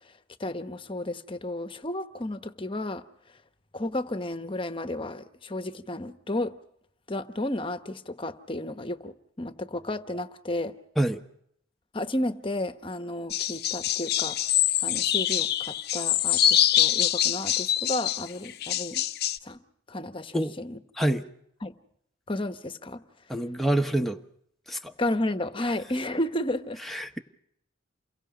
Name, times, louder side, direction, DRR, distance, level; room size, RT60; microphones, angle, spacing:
voice 1, 0.4-3.0 3.7-6.5 7.1-10.7 11.9-19.0 19.4-19.6 19.9-20.8 21.6-21.7 22.3-23.0 25.0-26.8, left 1 dB, 25° left, 1.1 m, -32 dB
sound 1, 13.3-19.4, left 11 dB, 55° left, 0.8 m, -25 dB
voice 2, 23.3-24.2 24.7-24.9 26.9-27.2, right 1 dB, ahead, 1.0 m, -26 dB
29.0 x 22.5 x 5.1 m
head